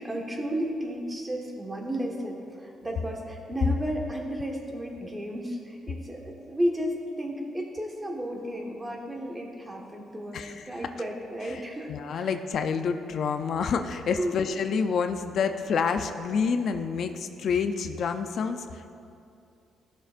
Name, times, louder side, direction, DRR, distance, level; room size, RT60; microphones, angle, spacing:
voice 1, 0.0-12.3 14.2-14.4, equal, 20° right, 0 dB, 1.4 m, -33 dB
voice 2, 10.3-10.9 11.5-19.0, left 6 dB, 65° left, 7 dB, 0.4 m, -28 dB
14.5 x 6.7 x 2.5 m, 2.5 s
cardioid pair, 90°, 0 cm